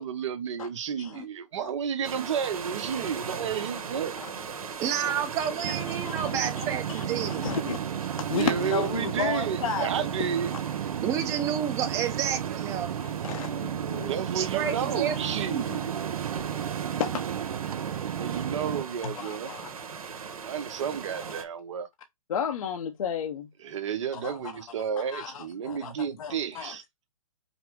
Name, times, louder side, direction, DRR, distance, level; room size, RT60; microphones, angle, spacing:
voice 1, 0.0-4.2 8.3-10.5 14.0-16.0 17.8-19.5 20.4-21.9 23.6-26.8, right 7 dB, 55° right, 0.8 m, -32 dB
sound 1, 2.0-21.4, right 6 dB, 75° right, 1.1 m, -39 dB
voice 2, 4.8-7.5 11.0-12.9 14.3-15.1 15.5-15.7, right 9 dB, 15° right, 0.6 m, -30 dB
voice 3, 5.6-10.1 10.5-10.6 11.1-11.2 13.0-14.2 14.6-15.4 15.7-15.8 17.0-17.2 19.0-19.7 22.3-23.5 24.1-24.6 25.1-25.9 26.2-26.7, left 7 dB, 65° left, 0.7 m, -34 dB
sound 2, 5.6-18.8, right 10 dB, 90° right, 0.4 m, -33 dB
5.3 x 2.0 x 4.5 m
hypercardioid pair, 155°, 19 cm